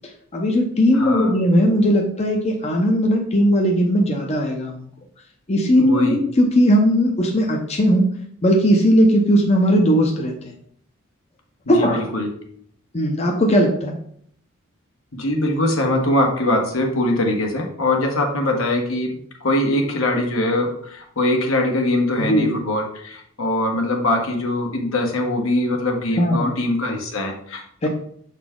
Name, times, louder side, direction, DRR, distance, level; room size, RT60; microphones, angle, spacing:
voice 1, 0.3-4.8 5.5-8.1 8.4-10.5 11.7-12.0 12.9-14.0 22.2-22.5 26.2-26.5 27.8-27.9, equal, 30° left, 1 dB, 0.7 m, -18 dB
voice 2, 0.9-1.3 5.8-6.2 11.8-12.3 15.1-27.9, left 1 dB, 75° left, 2 dB, 1.4 m, -22 dB
6.8 x 4.1 x 3.6 m, 0.64 s
head